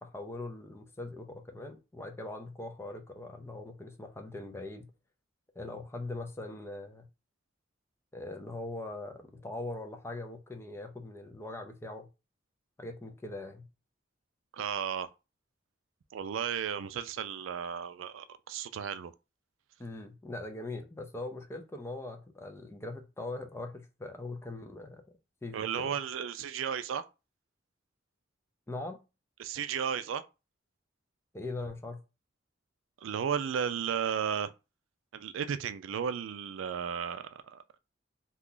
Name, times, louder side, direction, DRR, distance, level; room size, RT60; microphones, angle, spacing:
voice 1, 0.0-4.9 5.6-7.1 8.1-12.1 12.8-13.7 19.8-25.0 25.4-25.9 28.7-29.0 31.3-32.0, left 2 dB, 15° left, 0.5 m, -41 dB
voice 2, 14.5-15.1 16.1-19.1 25.5-27.0 29.4-30.2 33.0-34.5 35.1-37.6, right 7 dB, 85° right, 0.4 m, -34 dB
2.8 x 2.3 x 3.8 m
head